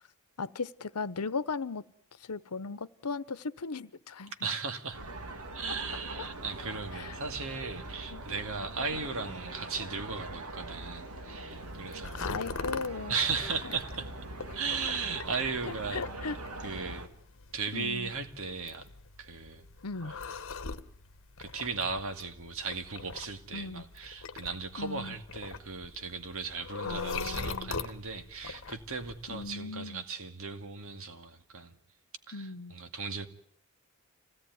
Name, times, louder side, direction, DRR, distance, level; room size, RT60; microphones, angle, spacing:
voice 1, 0.4-1.8 2.2-4.3 7.0-7.1 8.1-8.2 12.2-13.2 15.9-16.4 17.7-18.1 19.8-20.1 23.5-23.9 24.8-25.2 26.8-27.8 29.3-30.0 32.3-32.8, left 4 dB, 85° left, 1.0 m, -37 dB
voice 2, 4.4-5.0 5.5-12.4 13.1-14.1 14.5-16.0 16.6-17.1 17.5-18.9 19.2-19.7 20.0-20.2 21.4-31.8 32.3-33.3, right 4 dB, 65° right, 2.3 m, -36 dB
sound 1, 4.9-17.1, right 2 dB, 85° right, 2.5 m, -42 dB
sound 2, 11.5-29.6, left 4 dB, 60° left, 1.2 m, -43 dB
26.5 x 17.5 x 9.5 m
head